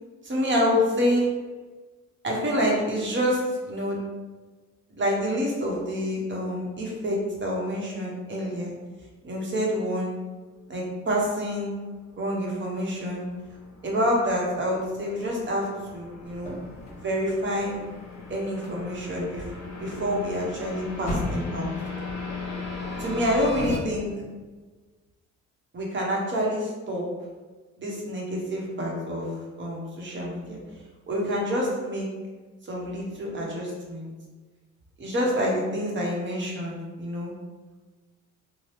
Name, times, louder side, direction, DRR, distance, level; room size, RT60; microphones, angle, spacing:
voice 1, 0.2-1.2 2.2-3.4 3.7-4.0 4.9-8.7 9.2-10.1 10.7-11.7 12.2-13.2 13.8-16.5 16.9-17.8 18.3-19.5 19.8-21.7 23.0-24.1 25.7-27.0 27.8-30.6 31.1-32.1 32.6-34.1 35.0-37.3, equal, 40° right, -3 dB, 1.0 m, -27 dB
sound 1, 12.5-23.8, left 3 dB, 65° left, 0.7 m, -38 dB
sound 2, 16.2-22.1, equal, 25° left, 1.2 m, -39 dB
2.9 x 2.2 x 3.3 m, 1.3 s
cardioid pair, 90°, 30 cm